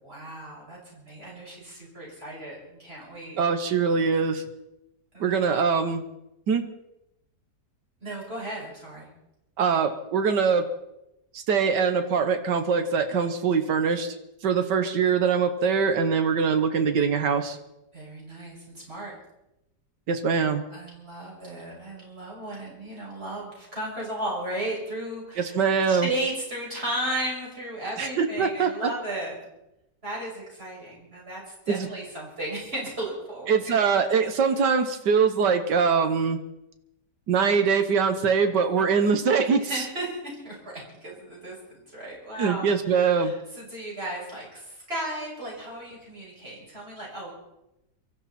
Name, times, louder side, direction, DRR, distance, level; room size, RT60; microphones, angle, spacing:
voice 1, 0.0-3.4 5.1-5.4 8.0-9.1 17.9-19.1 20.7-29.3 30.0-33.9 39.6-47.3, right 1 dB, 35° right, -4 dB, 6.7 m, -35 dB
voice 2, 3.4-4.4 5.2-6.0 6.5-6.6 9.6-10.6 11.3-14.1 14.4-17.6 20.1-20.6 25.4-26.1 28.0-28.9 31.7-31.9 33.5-36.4 37.3-39.8 42.4-43.3, right 6 dB, 90° right, 8 dB, 1.7 m, -23 dB
24.5 x 14.0 x 4.3 m, 0.89 s
omnidirectional pair, 1.8 m